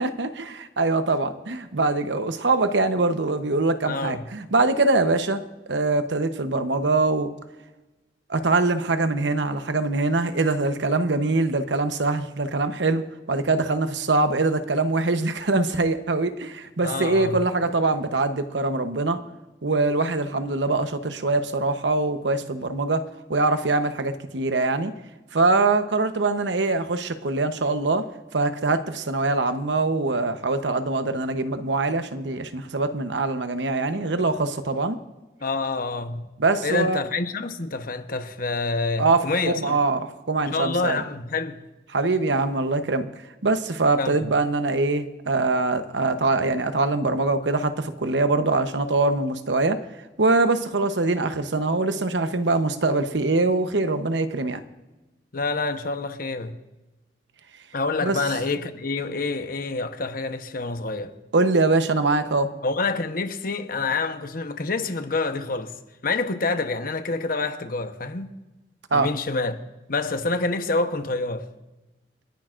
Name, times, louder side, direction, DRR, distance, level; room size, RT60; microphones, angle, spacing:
voice 1, 0.0-5.4 5.7-7.3 8.3-19.2 19.6-24.9 25.3-28.1 28.3-35.0 36.4-37.0 39.0-41.0 41.9-43.1 43.4-49.8 50.2-54.6 58.0-58.2 61.3-62.5 68.9-69.1, right 3 dB, 80° right, 0.9 m, -23 dB
voice 2, 3.9-4.3 16.8-17.4 35.4-36.3 36.6-39.8 40.5-41.6 44.0-44.2 55.3-56.6 57.7-61.1 62.6-65.7 66.0-68.3 68.9-69.6 69.9-71.5, left 3 dB, 55° left, 1.0 m, -27 dB
29.5 x 10.5 x 2.5 m
head